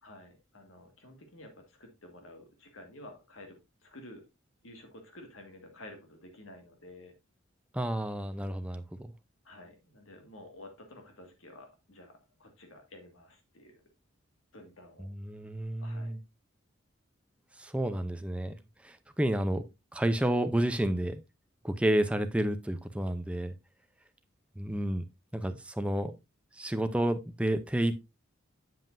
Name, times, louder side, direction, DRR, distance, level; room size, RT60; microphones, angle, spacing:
voice 1, 0.0-4.2 4.6-7.1 9.4-13.7 14.5-15.1 15.8-16.2, left 1 dB, 85° left, 2.0 m, -51 dB
voice 2, 7.7-9.1 15.0-16.2 17.6-18.6 18.8-19.6 19.9-21.2 21.6-23.5 24.6-25.1 25.3-26.2 26.5-28.0, right 1 dB, 5° right, 0.5 m, -30 dB
7.6 x 7.4 x 2.6 m
head